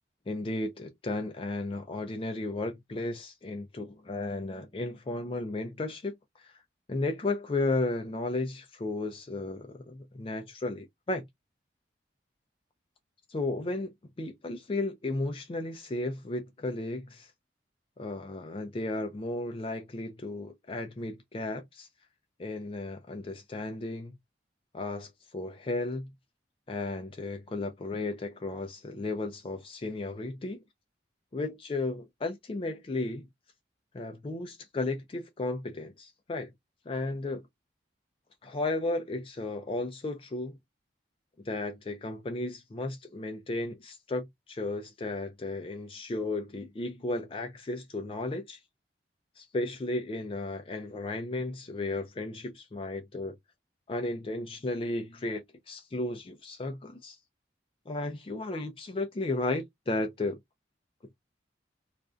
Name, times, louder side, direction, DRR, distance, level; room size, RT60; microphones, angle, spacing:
voice 1, 0.3-6.5 6.9-11.2 13.3-13.9 14.2-17.3 18.0-21.9 22.4-24.1 24.7-26.1 26.7-30.6 31.3-33.3 33.9-36.5 36.9-37.4 38.4-40.6 41.4-48.6 49.4-53.4 53.9-57.2 57.9-60.4, left 2 dB, 30° left, 0.4 m, -34 dB
2.4 x 2.1 x 2.4 m
head